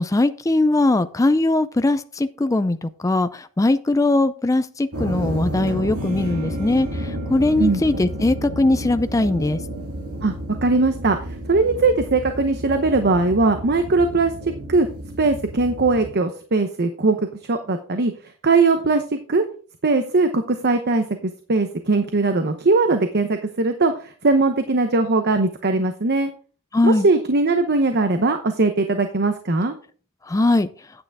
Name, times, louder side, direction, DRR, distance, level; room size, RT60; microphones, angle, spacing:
voice 1, 0.0-9.6 26.7-27.1 30.3-30.7, left 2 dB, 15° left, 10 dB, 0.4 m, -20 dB
sound 1, 4.9-16.1, equal, 80° right, 2.6 m, -31 dB
voice 2, 10.6-11.2 11.5-14.3 14.7-14.9 15.2-17.2 17.5-18.1 18.4-19.0 19.3-19.4 19.8-23.9 24.2-26.3 26.8-29.8, right 3 dB, 50° right, 7 dB, 0.9 m, -20 dB
9.8 x 8.9 x 3.5 m, 0.41 s
head